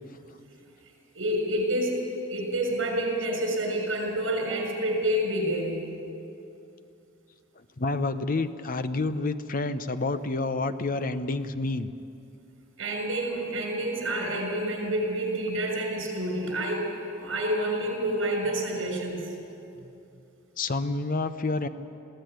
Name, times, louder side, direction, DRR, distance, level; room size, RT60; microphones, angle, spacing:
voice 1, 1.1-2.0 2.3-6.0 12.8-16.9 17.2-19.4, right 1 dB, 70° right, 2 dB, 6.1 m, -28 dB
voice 2, 7.8-11.9 20.6-21.7, left 3 dB, 40° left, 11 dB, 0.8 m, -28 dB
22.0 x 15.5 x 9.3 m, 2.7 s
head